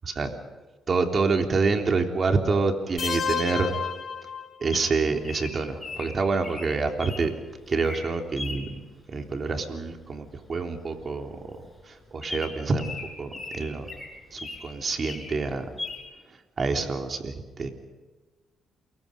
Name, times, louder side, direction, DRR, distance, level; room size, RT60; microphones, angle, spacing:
voice 1, 0.9-3.7 4.6-7.3 7.7-8.8 9.1-13.9 14.3-15.6 16.6-17.7, right 4 dB, 40° right, 5 dB, 3.6 m, -27 dB
sound 1, 3.0-4.9, left 7 dB, 45° left, 3.5 m, -31 dB
Bird vocalization bird call bird song, 4.7-7.2 7.7-8.0 8.4-8.6 10.1-10.4 10.6-10.7 11.0-11.2 11.6-11.7 12.2-14.7 15.0-15.4 15.8-16.0, left 3 dB, 10° left, 6.9 m, -38 dB
29.0 x 22.5 x 5.4 m, 1.3 s
cardioid pair, 90°, 0 cm